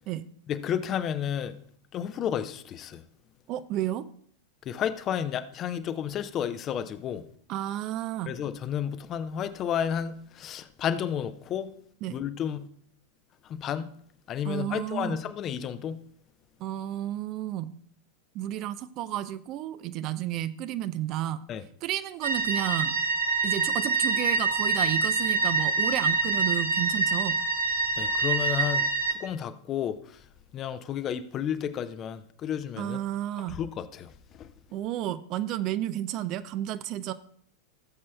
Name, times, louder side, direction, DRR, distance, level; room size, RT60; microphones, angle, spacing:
voice 1, 0.5-1.6 1.9-3.0 4.7-7.2 8.3-11.7 12.1-12.7 13.5-13.9 14.3-16.0 21.5-21.6 28.0-28.8 29.2-30.0 30.5-33.0 33.5-34.1 34.4-34.5, left 9 dB, 30° left, 0.6 m, -31 dB
voice 2, 3.5-4.0 7.5-8.3 12.0-12.2 14.4-15.2 16.6-17.7 18.3-21.4 21.8-23.0 23.4-27.3 32.8-33.6 34.7-37.1, right 12 dB, 40° right, 0.4 m, -32 dB
sound 1, 22.2-29.1, right 4 dB, 70° right, 0.8 m, -26 dB
16.0 x 7.4 x 2.3 m
figure-of-eight pair, 90°, 0 cm